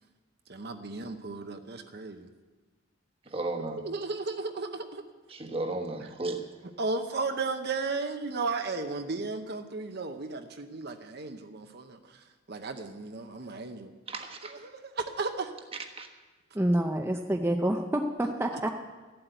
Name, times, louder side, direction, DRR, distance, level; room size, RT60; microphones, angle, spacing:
voice 1, 0.5-2.3 3.8-5.0 6.8-13.9 14.4-15.5 18.5-18.7, right 3 dB, 50° right, 6 dB, 0.9 m, -35 dB
voice 2, 3.3-3.8 5.3-6.4 14.1-14.5 16.0-16.1, right 2 dB, 30° right, 5 dB, 1.2 m, -34 dB
voice 3, 16.5-18.7, right 1 dB, 10° right, 2 dB, 0.6 m, -27 dB
13.5 x 7.9 x 9.2 m, 1.3 s
head